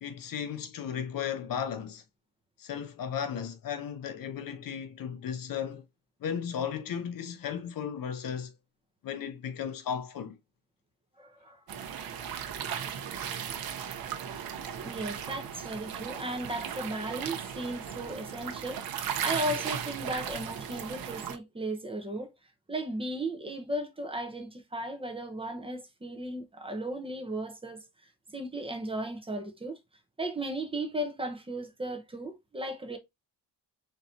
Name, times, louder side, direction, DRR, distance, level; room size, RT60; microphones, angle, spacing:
voice 1, 0.0-2.0 2.6-5.8 6.2-8.5 9.0-10.4, left 8 dB, 55° left, 0.7 m, -35 dB
voice 2, 11.2-11.6 14.8-22.3 22.7-27.8 28.3-29.8 30.2-33.0, right 1 dB, 15° right, 0.9 m, -36 dB
sound 1, 11.7-21.4, right 8 dB, 60° right, 0.9 m, -36 dB
4.5 x 4.0 x 2.7 m
wide cardioid pair, 180°, 40 cm